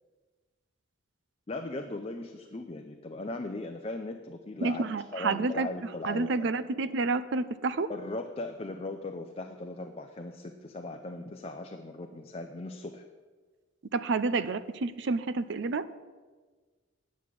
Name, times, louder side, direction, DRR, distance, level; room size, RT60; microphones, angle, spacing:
voice 1, 1.5-4.8 5.1-6.6 7.9-13.0, left 2 dB, 30° left, 5 dB, 0.6 m, -38 dB
voice 2, 4.6-5.7 6.0-7.9 13.9-15.9, right 3 dB, 65° right, 14 dB, 0.5 m, -29 dB
9.4 x 6.3 x 8.4 m, 1.4 s
head